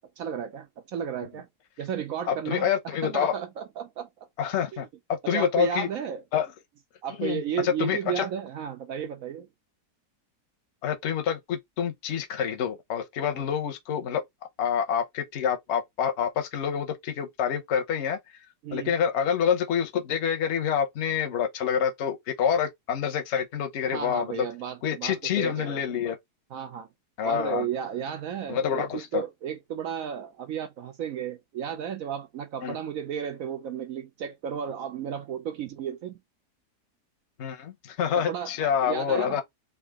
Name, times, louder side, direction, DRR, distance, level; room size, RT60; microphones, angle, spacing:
voice 1, 0.2-1.5 1.8-4.3 4.7-4.8 5.2-6.2 7.0-9.5 13.3-13.5 18.6-19.0 23.9-25.9 26.5-26.9 27.2-36.2 38.1-39.4, right 8 dB, 70° right, 0.8 m, -34 dB
voice 2, 2.3-3.3 4.4-5.9 6.3-6.5 7.2-8.2 10.8-14.2 14.6-18.2 18.7-24.5 24.8-26.2 27.2-27.7 28.5-29.2 32.6-32.8 37.4-39.4, left 8 dB, 55° left, 0.9 m, -27 dB
3.7 x 2.8 x 3.5 m
omnidirectional pair, 1.8 m